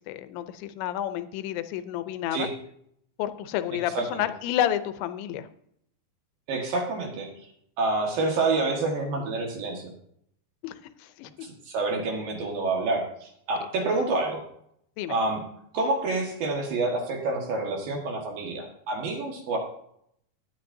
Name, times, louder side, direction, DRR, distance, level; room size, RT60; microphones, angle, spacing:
voice 1, 0.0-2.5 3.2-5.5 10.6-11.3 15.0-15.1, left 11 dB, 80° left, 11 dB, 2.9 m, -30 dB
voice 2, 3.9-4.3 6.5-7.3 7.8-9.9 11.4-14.4 15.1-15.4 15.7-19.6, right 3 dB, 60° right, 1 dB, 3.0 m, -28 dB
17.5 x 10.0 x 2.7 m, 0.72 s
omnidirectional pair, 5.2 m